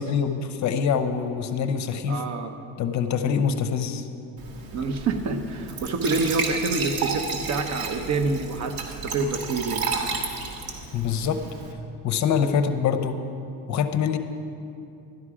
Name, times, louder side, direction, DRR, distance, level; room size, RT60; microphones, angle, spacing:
voice 1, 0.0-2.2 2.8-4.0 10.9-11.4 12.0-13.2 13.7-14.2, left 7 dB, 50° left, 9 dB, 0.7 m, -24 dB
voice 2, 2.0-2.6 4.7-9.9, right 3 dB, 45° right, 7 dB, 1.0 m, -27 dB
Glass / Trickle dribble / Fill (with liquid), 4.4-11.7, right 4 dB, 70° right, 1.8 m, -32 dB
12.0 x 11.0 x 4.9 m, 2.7 s
cardioid pair, 125°, 37 cm